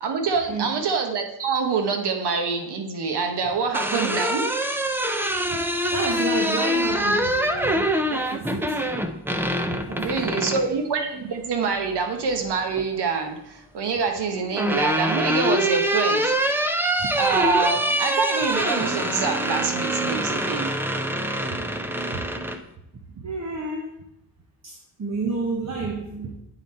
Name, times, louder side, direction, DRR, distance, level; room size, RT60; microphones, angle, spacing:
voice 1, 0.0-4.6 10.0-16.3 17.2-20.7, right 5 dB, 80° right, 4 dB, 1.0 m, -25 dB
sound 1, 3.5-10.7 12.2-12.8 14.1-22.6, equal, 5° right, 0.4 m, -25 dB
voice 2, 5.9-9.0 9.6-10.7 17.0-17.1 18.5-18.6 21.5-21.6 22.1-22.2 23.1-23.9 24.6-26.3, right 3 dB, 45° right, 1 dB, 0.9 m, -31 dB
8.9 x 4.0 x 4.2 m, 0.82 s
wide cardioid pair, 125°, 39 cm